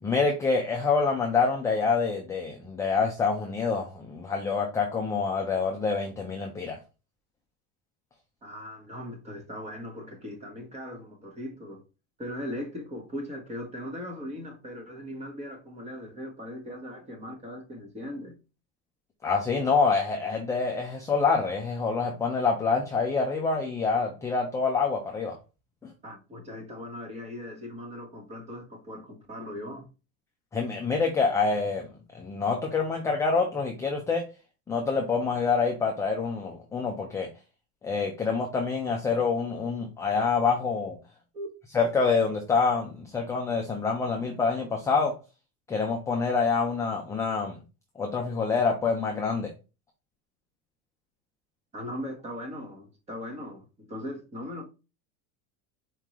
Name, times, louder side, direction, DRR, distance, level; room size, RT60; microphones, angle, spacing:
voice 1, 0.0-6.8 19.2-25.4 25.8-25.9 30.5-31.9 32.1-34.3 34.7-37.3 37.8-41.0 41.7-45.2 45.7-47.6 48.0-49.5, left 4 dB, 10° left, 0.4 m, -26 dB
voice 2, 8.4-11.8 12.2-18.4 26.0-29.9 41.3-41.5 51.7-54.7, left 1 dB, 15° right, 1.1 m, -39 dB
4.5 x 3.7 x 3.0 m
supercardioid pair, 150°, 38 cm